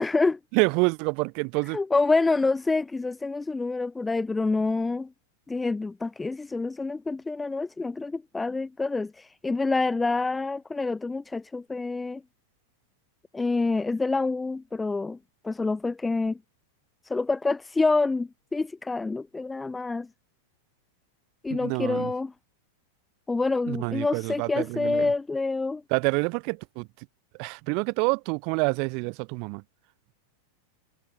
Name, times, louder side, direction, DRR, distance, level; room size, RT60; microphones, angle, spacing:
voice 1, 0.0-0.4 1.7-5.1 5.5-12.2 13.3-15.2 15.4-16.4 17.0-20.1 21.4-22.3 23.3-25.8, left 3 dB, 10° left, 1.2 m, -27 dB
voice 2, 0.5-1.8 21.5-22.1 23.7-25.1 25.9-26.9 27.4-29.6, right 35 dB, 45° right, 1.5 m, -27 dB
figure-of-eight pair, 90°, 0 cm